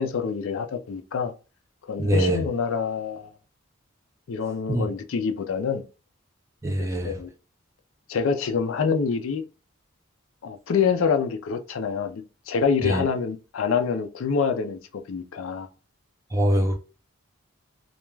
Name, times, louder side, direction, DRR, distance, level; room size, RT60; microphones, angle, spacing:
voice 1, 0.0-1.3 1.9-3.3 4.3-5.8 6.8-7.3 8.1-9.4 10.4-15.7, left 6 dB, 70° left, 0.4 m, -26 dB
voice 2, 2.0-2.4 4.7-4.9 6.6-7.2 12.8-13.0 16.3-16.7, equal, 15° right, 0.5 m, -23 dB
2.3 x 2.2 x 3.1 m
head